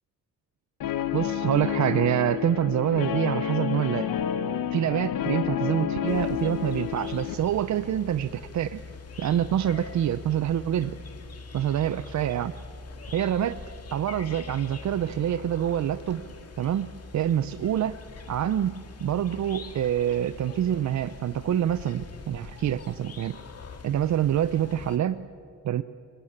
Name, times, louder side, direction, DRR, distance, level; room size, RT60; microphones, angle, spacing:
Guitar, 0.8-7.3, left 9 dB, 75° left, 1.3 m, -29 dB
voice 1, 1.1-4.1 4.7-8.8 9.2-11.0 11.5-12.5 13.1-13.6 13.9-16.3 16.6-18.0 18.3-23.4 23.8-25.2 25.6-25.8, right 10 dB, 55° right, 12 dB, 0.7 m, -26 dB
sound 1, 6.1-25.0, left 4 dB, 45° left, 2.2 m, -43 dB
27.0 x 20.0 x 8.7 m, 2.4 s
cardioid pair, 115°, 34 cm